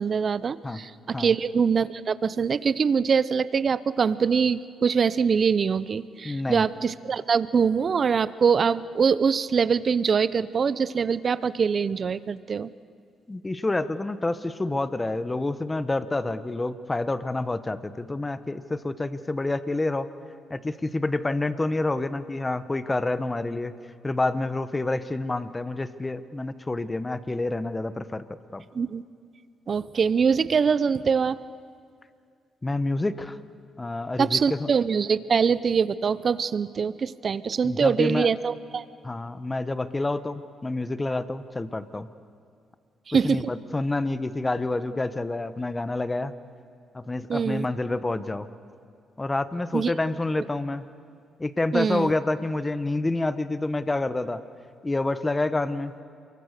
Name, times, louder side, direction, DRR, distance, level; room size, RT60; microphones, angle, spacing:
voice 1, 0.0-12.7 28.7-29.0 29.7-31.4 34.2-38.8 43.1-43.5 47.3-47.7 49.7-49.9 50.4-50.5 51.7-52.1, right 6 dB, 50° right, 17 dB, 0.7 m, -23 dB
voice 2, 6.2-6.6 13.3-20.1 20.5-23.7 24.0-28.6 32.6-33.4 33.8-34.7 37.6-38.3 39.0-42.1 43.2-46.3 46.9-48.5 49.2-50.8 51.4-54.4 54.8-55.9, left 2 dB, 20° left, 13 dB, 1.2 m, -28 dB
28.5 x 23.5 x 6.8 m, 2.3 s
cardioid pair, 80°, 0 cm